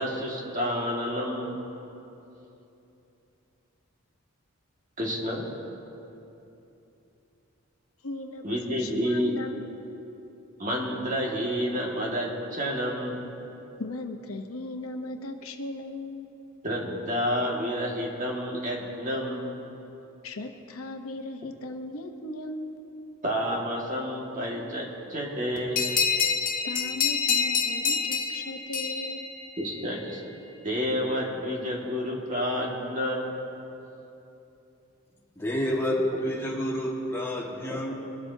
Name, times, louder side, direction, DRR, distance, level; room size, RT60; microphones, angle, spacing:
voice 1, 0.0-1.6 5.0-5.5 8.4-9.3 10.6-13.2 16.6-19.5 23.2-25.9 29.6-30.2 30.6-33.3, equal, 35° right, -2 dB, 1.8 m, -29 dB
voice 2, 8.0-9.9 13.8-16.3 20.2-22.8 26.6-29.3, left 2 dB, 75° left, 5 dB, 0.9 m, -37 dB
sound 1, 25.8-30.0, left 6 dB, 40° left, 0.8 m, -27 dB
voice 3, 35.4-37.9, equal, 10° left, -4 dB, 1.6 m, -29 dB
21.5 x 12.5 x 2.7 m, 2.9 s
head